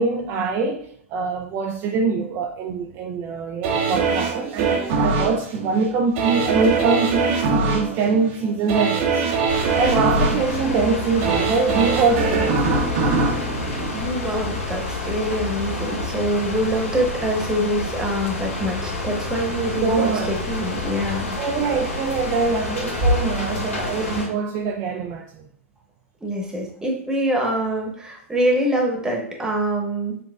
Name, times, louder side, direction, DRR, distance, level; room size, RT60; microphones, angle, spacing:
voice 1, 0.0-9.3 9.8-12.6 19.8-20.3 21.3-25.4, right 4 dB, 35° right, 0.4 m, -23 dB
sound 1, 3.6-14.6 15.0-15.1, right 4 dB, 50° right, 0.8 m, -23 dB
sound 2, 9.5-24.3, left 2 dB, 80° left, 1.2 m, -28 dB
voice 2, 13.9-21.4 26.2-30.2, right 1 dB, 10° right, 1.0 m, -25 dB
6.4 x 2.2 x 2.3 m
hypercardioid pair, 105°, 8 cm